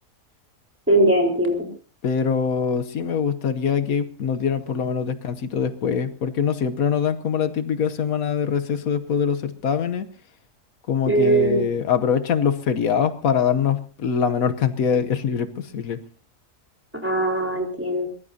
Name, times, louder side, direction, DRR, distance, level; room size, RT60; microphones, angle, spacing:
voice 1, 0.9-1.7 11.1-11.7 17.0-18.1, right 2 dB, 10° right, 1 dB, 4.2 m, -20 dB
voice 2, 2.0-10.1 10.9-16.0, left 7 dB, 80° left, 9 dB, 1.4 m, -23 dB
23.5 x 20.0 x 2.8 m, 0.39 s
omnidirectional pair, 1.5 m